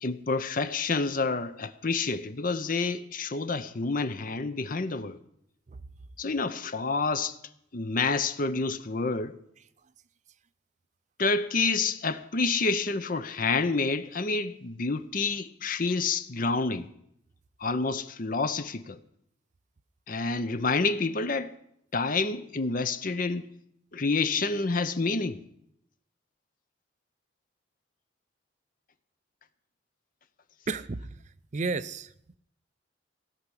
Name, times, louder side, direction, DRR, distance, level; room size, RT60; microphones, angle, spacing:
voice 1, 0.0-5.2 6.2-7.4 7.7-9.4 11.2-16.9 17.6-19.0 20.1-21.5 21.9-23.5 23.9-25.4, left 4 dB, 45° left, 0.7 m, -28 dB
voice 2, 30.7-32.1, right 4 dB, 40° right, 0.5 m, -33 dB
16.5 x 5.8 x 9.8 m
head